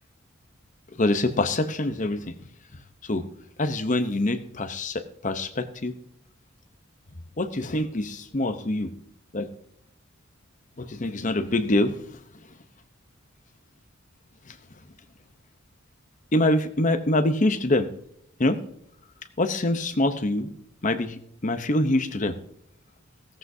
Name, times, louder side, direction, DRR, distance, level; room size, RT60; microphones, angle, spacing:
voice 1, 1.0-2.3 3.0-3.2 3.6-5.9 7.4-8.9 9.3-9.5 10.8-12.1 14.5-14.6 16.3-17.9 18.4-18.6 19.4-20.5 20.8-21.2 21.4-22.4, left 1 dB, 35° left, 9 dB, 0.8 m, -25 dB
16.0 x 14.0 x 2.7 m, 0.72 s
head